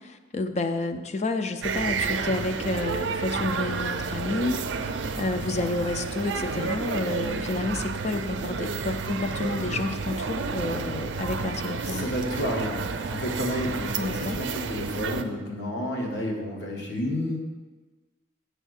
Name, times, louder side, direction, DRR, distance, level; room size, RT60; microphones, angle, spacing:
voice 1, 0.0-12.1 14.0-14.4, left 2 dB, 35° left, 8 dB, 0.4 m, -30 dB
sound 1, 1.6-15.2, right 5 dB, 80° right, 0.5 m, -31 dB
voice 2, 11.8-17.4, left 1 dB, 70° left, 0 dB, 1.3 m, -30 dB
8.1 x 3.3 x 6.4 m, 1.2 s
head